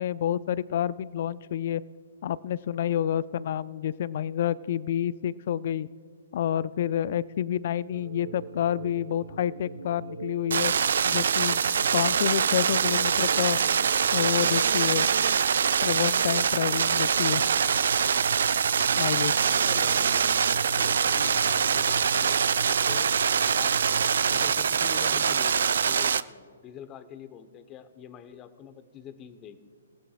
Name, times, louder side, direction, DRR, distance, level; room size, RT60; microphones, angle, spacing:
voice 1, 0.0-1.8 2.2-5.9 6.3-10.7 11.1-11.6 11.9-13.6 14.1-15.1 15.8-17.4 19.0-19.3, left 10 dB, 55° left, 19 dB, 0.4 m, -28 dB
sound 1, 7.9-24.5, right 4 dB, 90° right, 1.2 m, -41 dB
sound 2, 10.5-26.2, right 7 dB, 70° right, 0.4 m, -24 dB
voice 2, 19.4-20.3 20.6-23.2 23.5-23.8 24.3-29.7, left 8 dB, 25° left, 12 dB, 0.9 m, -45 dB
28.0 x 16.5 x 2.4 m, 2.2 s
hypercardioid pair, 130°, 0 cm